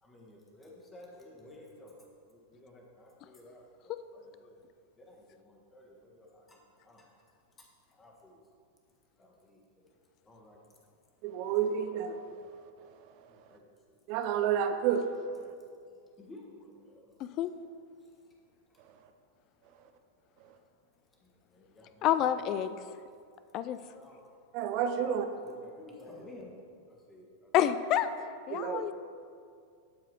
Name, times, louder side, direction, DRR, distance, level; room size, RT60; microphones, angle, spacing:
voice 1, 0.0-1.9 2.3-4.6 5.0-7.1 7.6-8.4 9.2-9.6 10.2-10.6 13.3-13.9 15.4-15.5 16.2-17.5 21.2-22.3 22.7-22.9 23.9-24.2 24.9-26.5 26.9-27.5, left 1 dB, 15° left, -1 dB, 1.6 m, -54 dB
voice 2, 11.2-12.2 14.1-15.0 24.5-25.3 28.5-28.8, right 8 dB, 45° right, 7 dB, 0.6 m, -29 dB
voice 3, 22.0-22.8 23.5-23.8 27.5-28.1 28.5-28.9, left 11 dB, 35° left, 12 dB, 0.3 m, -28 dB
12.0 x 4.8 x 4.7 m, 2.2 s
figure-of-eight pair, 90°, 0 cm